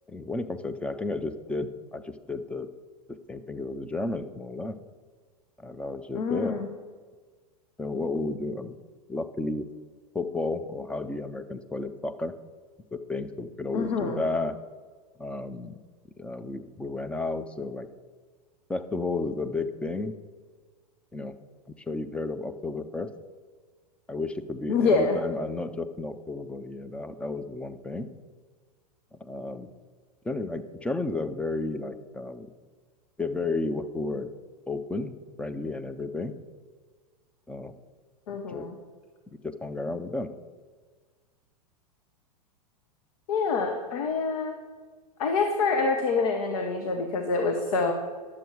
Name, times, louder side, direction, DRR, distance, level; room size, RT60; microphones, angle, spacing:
voice 1, 0.1-2.7 3.3-4.8 5.6-6.6 7.8-8.8 9.1-9.7 10.1-12.3 12.9-14.6 15.2-15.7 16.2-17.9 18.7-20.1 21.1-21.4 21.7-23.1 24.1-28.1 29.2-29.7 30.2-32.5 33.2-34.3 34.7-36.3 37.5-37.8 38.5-38.7 39.4-40.3, left 2 dB, 5° left, 9 dB, 0.5 m, -32 dB
voice 2, 6.2-6.7 13.7-14.2 24.7-25.2 38.3-38.7 43.3-44.5 45.2-47.9, left 4 dB, 60° left, 4 dB, 1.0 m, -26 dB
10.5 x 7.2 x 4.8 m, 1.5 s
hypercardioid pair, 95°, 20 cm